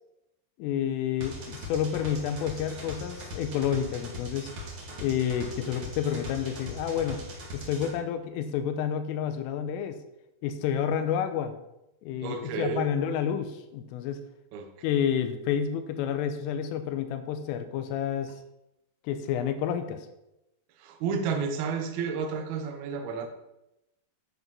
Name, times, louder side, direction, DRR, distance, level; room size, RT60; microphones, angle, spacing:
voice 1, 0.6-4.5 5.0-7.2 7.5-10.0 10.4-11.6 12.0-14.2 14.8-18.3 19.1-20.1, left 8 dB, 85° left, 9 dB, 3.5 m, -29 dB
sound 1, 1.2-7.9, left 1 dB, 40° right, 2.0 m, -40 dB
voice 2, 12.2-12.9 14.5-14.7 20.8-23.3, right 5 dB, 70° right, 5 dB, 2.5 m, -31 dB
10.5 x 7.7 x 5.5 m, 0.89 s
omnidirectional pair, 5.7 m